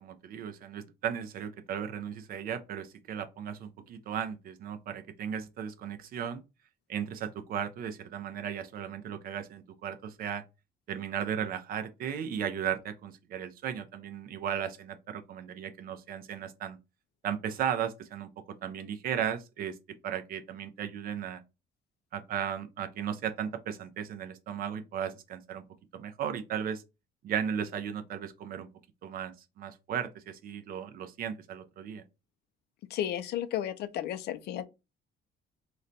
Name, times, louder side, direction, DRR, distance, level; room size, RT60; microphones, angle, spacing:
voice 1, 0.0-6.4 6.9-10.4 10.9-16.8 17.2-19.8 20.0-21.4 22.1-25.6 25.9-26.8 27.2-28.7 29.0-32.0, right 8 dB, 50° right, 0.4 m, -36 dB
voice 2, 32.9-34.7, left 11 dB, 60° left, 0.4 m, -33 dB
3.9 x 2.1 x 2.6 m
cardioid pair, 170°, 20 cm